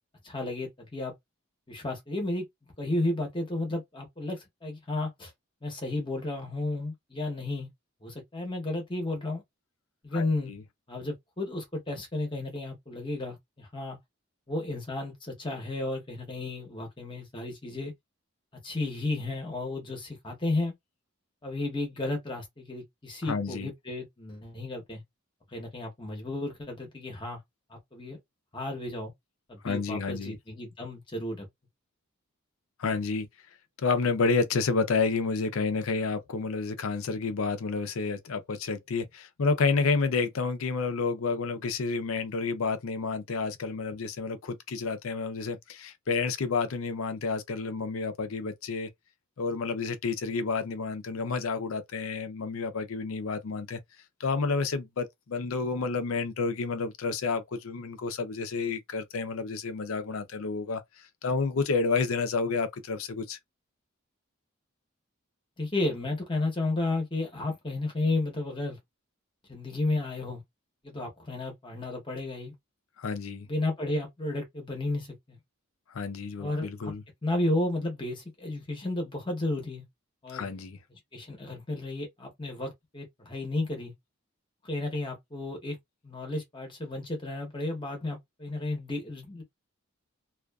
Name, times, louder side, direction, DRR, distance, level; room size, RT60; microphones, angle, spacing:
voice 1, 0.2-1.1 1.7-2.4 2.8-5.3 5.6-7.7 8.0-9.4 10.0-10.5 10.9-14.0 14.5-17.9 18.6-20.7 21.4-25.0 25.5-27.4 27.7-28.2 28.5-29.1 29.5-31.5 65.6-68.8 69.5-70.4 70.8-72.5 73.5-75.4 76.4-76.9 77.2-79.9 80.2-80.5 81.1-83.9 84.6-85.8 86.0-89.4, left 2 dB, 25° left, 0.9 m, -33 dB
voice 2, 10.1-10.6 23.3-23.7 29.6-30.4 32.8-33.3 33.8-48.9 49.4-53.8 54.2-60.8 61.2-63.4 73.0-73.5 75.9-77.0 80.3-80.8, left 4 dB, 80° left, 0.5 m, -30 dB
2.4 x 2.3 x 2.3 m
head